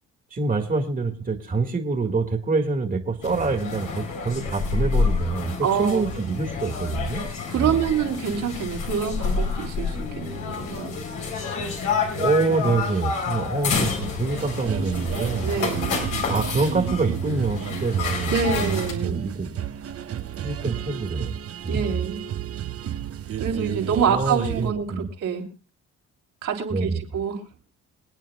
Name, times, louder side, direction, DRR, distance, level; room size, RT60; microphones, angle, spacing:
voice 1, 0.3-7.2 7.6-7.8 12.2-15.5 16.3-18.7 19.0-19.6 20.4-21.3 21.6-22.0 24.1-25.1 26.7-27.0, right 3 dB, 30° right, 3 dB, 1.9 m, -26 dB
sound 1, 3.2-18.9, left 5 dB, 90° left, 3.9 m, -29 dB
voice 2, 5.6-6.1 7.5-11.0 15.4-15.9 18.3-19.2 21.7-22.2 23.4-25.5 26.4-27.4, right 7 dB, 80° right, 0 dB, 3.3 m, -26 dB
sound 2, 14.3-24.7, right 10 dB, 50° right, 0.8 m, -31 dB
26.5 x 9.0 x 2.4 m, 0.34 s
cardioid pair, 90°, 30 cm